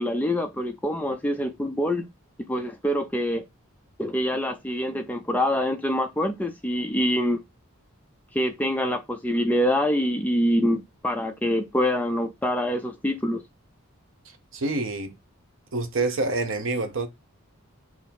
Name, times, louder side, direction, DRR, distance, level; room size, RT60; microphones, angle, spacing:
voice 1, 0.0-2.1 2.4-3.4 4.0-7.4 8.3-13.4, equal, 5° left, 0.4 m, -25 dB
voice 2, 14.5-15.1 15.7-17.1, right 3 dB, 60° right, 0.7 m, -27 dB
5.7 x 2.0 x 4.5 m
head